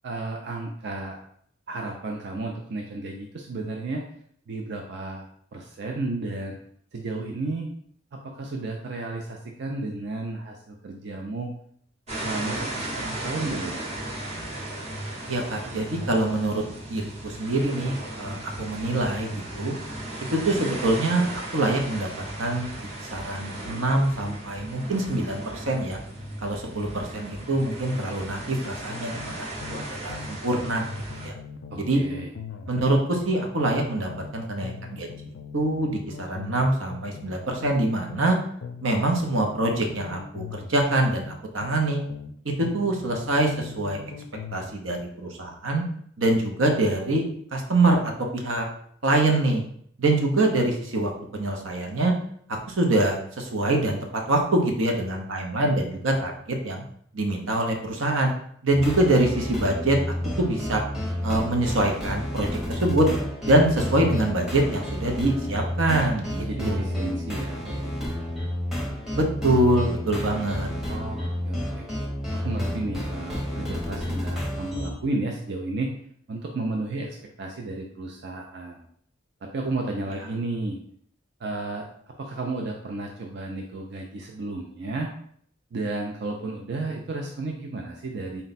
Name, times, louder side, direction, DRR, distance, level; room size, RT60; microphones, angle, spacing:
voice 1, 0.0-1.2 1.7-4.0 4.5-6.6 6.9-7.7 8.1-11.5 12.2-13.8 31.7-32.3 63.5-63.7 66.4-68.3 70.9-71.9 72.3-75.9 76.3-78.9 79.4-80.8 81.4-81.9 82.2-85.1 85.7-88.4, right 2 dB, 60° right, 1 dB, 0.4 m, -33 dB
sound 1, 12.1-31.3, right 1 dB, 35° right, 0.9 m, -36 dB
voice 2, 15.3-16.6 16.9-19.7 20.3-22.1 22.4-26.0 26.4-30.8 31.2-31.3 31.8-32.0 32.7-35.1 35.5-38.4 38.8-42.0 42.4-44.0 44.5-45.8 46.2-47.2 47.5-48.6 49.0-49.6 50.0-52.1 52.7-56.8 57.1-58.3 58.6-60.0 60.4-60.8 61.2-63.1 63.4-67.0 69.1-70.7, right 2 dB, 85° right, 2 dB, 0.8 m, -24 dB
sound 2, 28.9-30.3 30.6-34.3 34.6-38.3 38.6-42.3 42.6-44.7, left 5 dB, 70° left, 0.4 m, -40 dB
sound 3, 58.7-74.9, left 1 dB, ahead, 0.8 m, -30 dB
4.0 x 2.2 x 4.0 m, 0.64 s
head